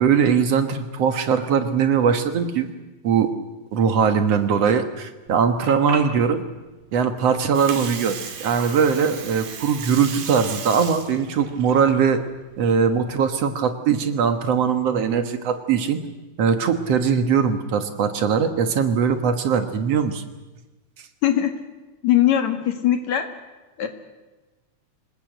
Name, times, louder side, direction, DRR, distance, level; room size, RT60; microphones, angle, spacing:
voice 1, 0.0-2.7 3.0-3.3 3.7-6.4 6.9-12.2 12.6-16.0 16.4-20.2, right 6 dB, 55° right, 8 dB, 2.3 m, -21 dB
Water, 5.3-13.2, right 6 dB, 75° right, 3.8 m, -36 dB
voice 2, 21.2-21.5 22.0-23.3 23.8-23.9, left 11 dB, 60° left, 7 dB, 3.0 m, -20 dB
26.0 x 20.0 x 8.1 m, 1.2 s
omnidirectional pair, 3.7 m